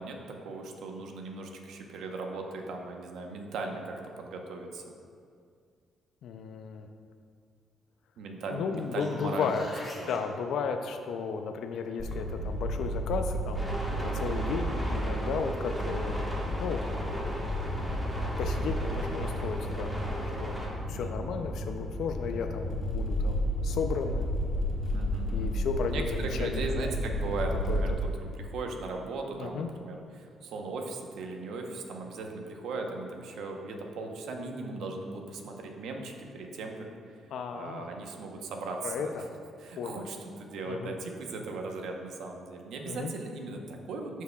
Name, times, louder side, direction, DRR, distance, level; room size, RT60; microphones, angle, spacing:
voice 1, 0.0-4.8 8.2-9.7 10.0-10.1 15.7-16.0 20.9-21.6 24.9-25.5 25.9-36.9 37.5-39.2 39.6-44.2, right 3 dB, 80° right, 2 dB, 0.8 m, -38 dB
voice 2, 6.2-6.9 8.5-9.7 10.1-16.2 16.6-16.9 18.1-19.9 20.4-20.6 20.9-24.3 25.3-26.7 27.7-27.8 29.4-29.7 37.3-37.9 38.8-39.2 39.8-40.0 40.6-40.9 42.9-43.1, left 6 dB, 75° left, 6 dB, 0.4 m, -34 dB
sound 1, 8.7-10.2 15.0-15.1, left 1 dB, 30° left, 1.5 m, -45 dB
sound 2, 12.0-27.9, equal, 45° left, 1.1 m, -32 dB
sound 3, 13.5-20.7, equal, 10° right, 1.4 m, -36 dB
12.0 x 4.7 x 2.3 m, 2.3 s
cardioid pair, 90°, 0 cm